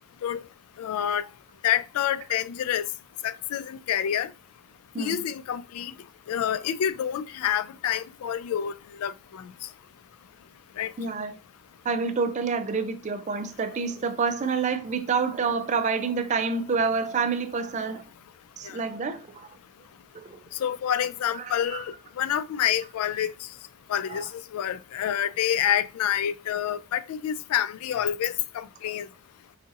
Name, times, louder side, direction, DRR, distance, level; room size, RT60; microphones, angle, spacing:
voice 1, 0.8-1.3 1.6-2.8 3.2-4.3 5.0-5.9 6.3-8.7 9.0-9.4 10.8-10.9 18.7-18.8 20.6-23.3 23.9-29.1, left 10 dB, 80° left, 0.3 m, -28 dB
voice 2, 4.9-5.3 11.0-11.3 11.8-18.0 18.6-19.5 20.3-20.4 21.4-21.8 23.2-23.3 24.1-24.2, right 5 dB, 35° right, 0.4 m, -28 dB
4.9 x 2.6 x 2.5 m
head